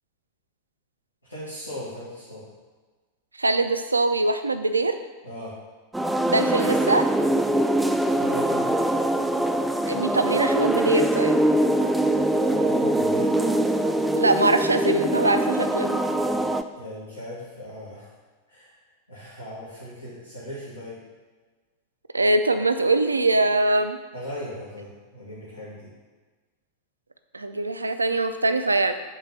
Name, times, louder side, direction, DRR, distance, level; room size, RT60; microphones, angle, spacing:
voice 1, 1.3-2.5 5.2-5.6 8.2-8.7 12.1-13.4 16.7-18.1 18.5-18.7 19.1-21.0 24.1-25.9, left 1 dB, 85° left, -10 dB, 1.9 m, -38 dB
voice 2, 3.4-5.0 6.3-7.1 9.9-11.4 14.2-16.0 22.1-24.0 27.3-28.9, right 2 dB, 80° right, 9 dB, 0.4 m, -22 dB
sound 1, 5.9-16.6, right 1 dB, 5° right, 0.3 m, -23 dB
5.3 x 3.9 x 5.6 m, 1.3 s
figure-of-eight pair, 90°, 0 cm